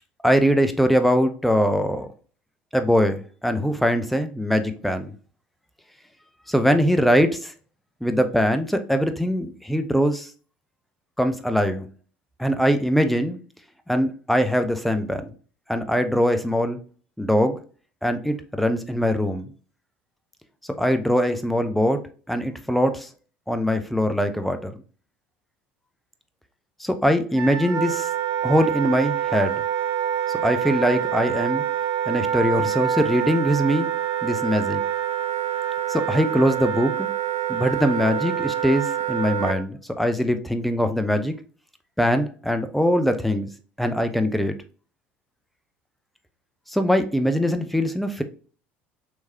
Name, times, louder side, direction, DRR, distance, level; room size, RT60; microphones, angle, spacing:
voice 1, 0.2-2.1 2.7-5.1 6.5-7.5 8.0-10.3 11.2-11.9 12.4-13.4 13.9-15.2 15.7-16.8 17.2-17.6 18.0-19.5 20.8-22.0 22.3-23.1 23.5-24.8 26.8-28.1 28.4-29.6 30.4-31.6 32.1-33.9 34.2-34.8 35.9-37.1 37.5-41.3 42.0-43.5 43.8-44.5 46.7-48.2, equal, ahead, 8 dB, 0.6 m, -22 dB
Wind instrument woodwind instrument, 27.3-39.6, right 10 dB, 60° right, 0.6 m, -26 dB
3.5 x 3.1 x 2.7 m, 0.39 s
hypercardioid pair, 70°, 6 cm